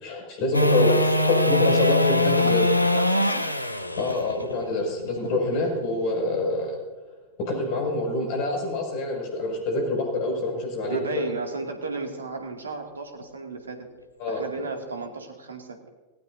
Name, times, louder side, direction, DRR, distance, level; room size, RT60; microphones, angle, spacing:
voice 1, 0.0-0.9 1.3-2.7 4.0-6.8 7.4-11.2 14.2-14.4, left 2 dB, 45° left, 1 dB, 6.1 m, -26 dB
sound 1, 0.5-6.7 13.2-13.3, left 1 dB, 85° left, 0.8 m, -23 dB
voice 2, 2.4-3.5 6.2-6.5 10.9-13.9 14.3-15.8, right 3 dB, 75° right, 3 dB, 2.3 m, -34 dB
19.0 x 18.0 x 2.7 m, 1.3 s
figure-of-eight pair, 90°, 0 cm